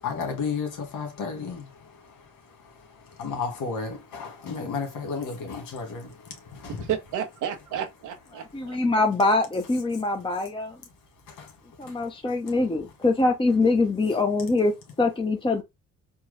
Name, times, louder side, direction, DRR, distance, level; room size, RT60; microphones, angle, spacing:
voice 1, 0.0-1.7 2.0-2.1 3.2-6.9 11.3-11.5 11.9-12.0, left 5 dB, 85° left, 1.8 m, -33 dB
voice 2, 6.7-8.8, right 9 dB, 90° right, 0.9 m, -32 dB
voice 3, 8.5-10.8 11.8-15.6, left 3 dB, 15° left, 0.8 m, -24 dB
4.5 x 2.3 x 3.2 m
cardioid pair, 90°, 30 cm